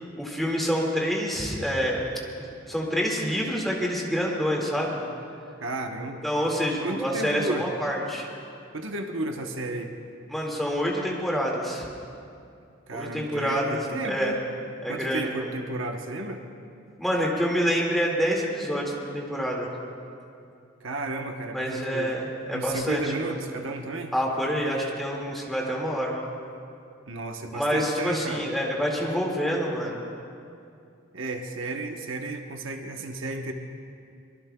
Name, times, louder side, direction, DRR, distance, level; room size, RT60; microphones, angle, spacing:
voice 1, 0.2-2.0 2.4-5.0 6.2-8.3 10.3-11.9 12.9-14.4 14.8-15.5 17.0-19.7 21.5-23.3 24.1-26.2 27.5-30.0, equal, ahead, -3 dB, 2.0 m, -27 dB
voice 2, 5.6-6.2 6.8-7.7 8.7-9.9 12.9-14.4 14.9-16.4 20.8-22.1 22.5-24.1 27.1-28.5 31.1-33.5, right 2 dB, 70° right, 4 dB, 0.9 m, -33 dB
23.5 x 21.5 x 2.3 m, 2.5 s
head